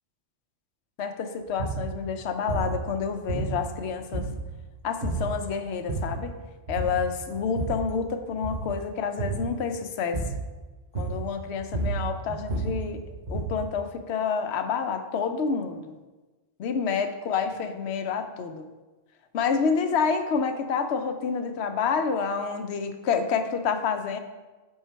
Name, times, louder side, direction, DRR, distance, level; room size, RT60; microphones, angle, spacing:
voice 1, 1.0-4.3 4.8-6.3 6.7-10.2 11.0-13.0 13.3-15.9 16.6-18.7 19.3-24.2, left 6 dB, 65° left, 8 dB, 0.9 m, -28 dB
sound 1, 1.5-1.9 2.5-2.8 3.3-3.8 4.1-4.6 5.0-5.3 5.7-6.2 6.7-7.1 7.3-7.9 8.3-8.7 9.2-9.5 10.1-10.5 10.9-11.3 11.6-13.7, right 3 dB, 45° right, 1.5 m, -31 dB
9.4 x 3.7 x 4.4 m, 1.2 s
omnidirectional pair, 1.2 m